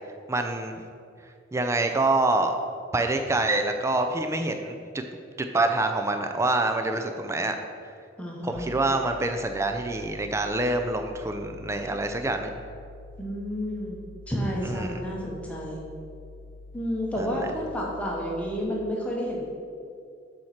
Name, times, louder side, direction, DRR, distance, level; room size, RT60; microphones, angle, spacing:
voice 1, 0.3-0.8 1.5-2.6 2.9-5.0 5.4-7.6 8.4-12.5 14.7-15.0 17.2-17.5, right 2 dB, 15° right, 6 dB, 0.4 m, -26 dB
voice 2, 8.2-8.6 13.2-14.0 14.3-15.8 16.7-19.4, equal, 5° left, -3 dB, 1.0 m, -30 dB
sound 1, 8.5-18.6, left 3 dB, 60° left, 0.8 m, -46 dB
7.6 x 4.3 x 5.8 m, 2.3 s
head